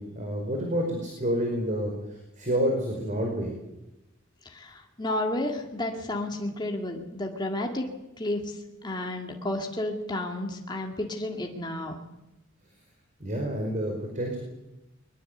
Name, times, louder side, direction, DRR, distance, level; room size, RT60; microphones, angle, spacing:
voice 1, 0.0-3.5 13.2-14.4, equal, 40° right, 1 dB, 5.1 m, -29 dB
voice 2, 4.5-7.9 8.2-8.4 8.8-12.0, left 1 dB, 20° left, 1 dB, 2.3 m, -31 dB
22.0 x 21.0 x 8.2 m, 0.94 s
head